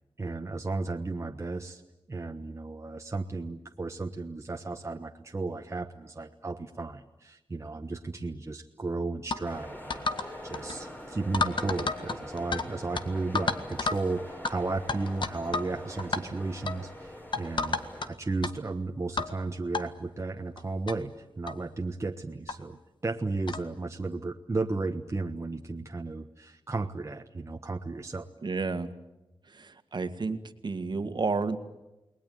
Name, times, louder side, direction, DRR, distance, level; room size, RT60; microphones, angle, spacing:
voice 1, 0.2-1.8 2.1-17.8 18.1-28.3, right 3 dB, 30° right, 3 dB, 1.3 m, -34 dB
sound 1, 9.3-9.4 9.9-10.3 10.5-10.8 11.3-12.7 12.9-13.0 13.3-14.0 14.4-14.5 14.9-15.7 16.0-16.2 16.7-16.8 17.3-18.1 18.4-18.5 19.2-19.3 19.7-19.8 20.6-20.7 20.9-21.0 21.5-21.6 22.5-22.6 23.5-23.7, left 4 dB, 60° left, 1.7 m, -30 dB
sound 2, 9.4-18.1, equal, 20° left, 4.7 m, -43 dB
voice 2, 28.4-28.9 29.5-31.6, right 4 dB, 55° right, 8 dB, 1.9 m, -31 dB
29.5 x 20.5 x 9.4 m, 0.99 s
wide cardioid pair, 95°, 9 cm